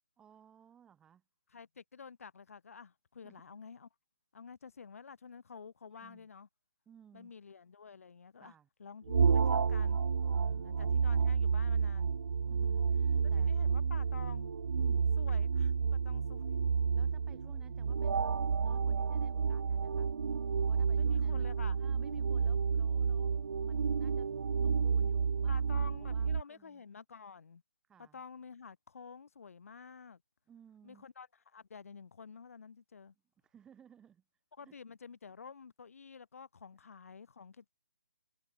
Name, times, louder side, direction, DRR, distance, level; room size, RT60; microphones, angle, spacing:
voice 1, 0.2-1.2 3.2-3.6 5.9-6.3 6.9-7.3 8.4-8.7 10.3-10.8 12.5-13.5 14.8-15.1 16.9-20.1 20.7-24.3 24.6-26.8 27.9-28.2 30.5-31.0 33.4-34.2 34.6-34.7, right 8 dB, 10° right, 3.0 m, -60 dB
voice 2, 1.5-3.9 4.3-6.5 7.1-8.5 8.8-10.0 10.6-12.1 13.3-14.5 15.2-16.5 21.0-21.8 25.5-27.6 28.0-30.2 30.8-33.1 34.6-37.7, left 5 dB, 65° left, 6.9 m, -50 dB
sound 1, 9.1-26.4, right 6 dB, 85° right, 0.4 m, -30 dB
hypercardioid pair, 165°, 8 cm